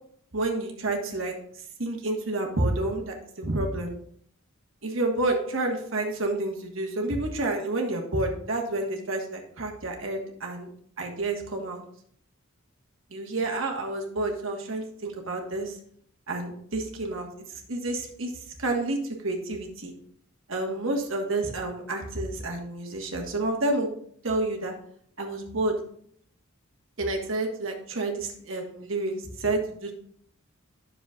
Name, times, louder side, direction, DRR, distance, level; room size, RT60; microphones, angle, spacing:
voice 1, 0.3-1.3 1.8-3.9 4.8-10.7 11.0-11.8 13.1-15.8 16.3-18.3 18.6-19.9 20.5-23.9 24.2-24.7 25.2-25.8 27.0-29.9, right 2 dB, 70° right, 2 dB, 1.5 m, -29 dB
10.0 x 6.7 x 2.4 m, 0.63 s
head